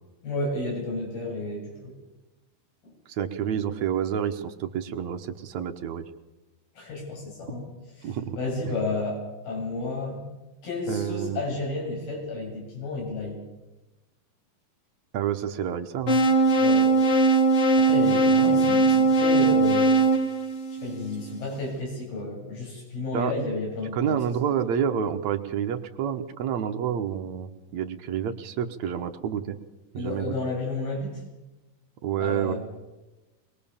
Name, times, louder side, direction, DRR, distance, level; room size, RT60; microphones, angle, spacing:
voice 1, 0.2-1.9 2.8-2.9 6.8-7.6 8.0-10.2 10.6-13.4 16.6-16.9 17.8-19.9 20.8-24.2 30.0-31.2 32.2-32.6, left 2 dB, 80° left, -1 dB, 9.9 m, -31 dB
voice 2, 3.1-6.0 8.0-8.4 10.9-11.4 15.1-16.2 23.1-23.3 23.9-29.6 29.9-30.4 32.0-32.5, right 9 dB, 65° right, 7 dB, 2.0 m, -29 dB
sound 1, 16.1-21.2, right 3 dB, 45° left, 2.7 m, -20 dB
24.0 x 21.5 x 7.1 m, 1.1 s
omnidirectional pair, 4.3 m